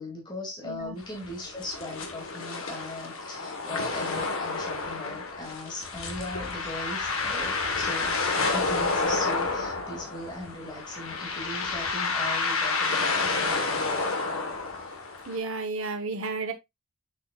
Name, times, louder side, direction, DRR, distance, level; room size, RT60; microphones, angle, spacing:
voice 1, 0.0-13.7, left 1 dB, 20° left, 2.7 m, -39 dB
voice 2, 0.6-1.0 15.3-16.5, right 3 dB, 65° right, 1.3 m, -32 dB
sound 1, 1.0-15.4, left 3 dB, 65° left, 1.6 m, -30 dB
7.3 x 6.5 x 2.5 m
head